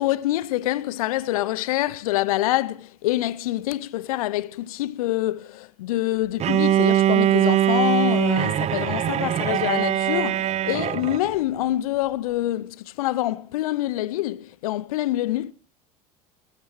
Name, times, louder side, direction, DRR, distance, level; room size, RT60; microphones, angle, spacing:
voice 1, 0.0-15.5, left 15 dB, 65° left, 0.7 m, -26 dB
Bowed string instrument, 6.4-11.3, right 12 dB, 35° right, 0.8 m, -22 dB
29.0 x 13.5 x 3.1 m
figure-of-eight pair, 75°, 20 cm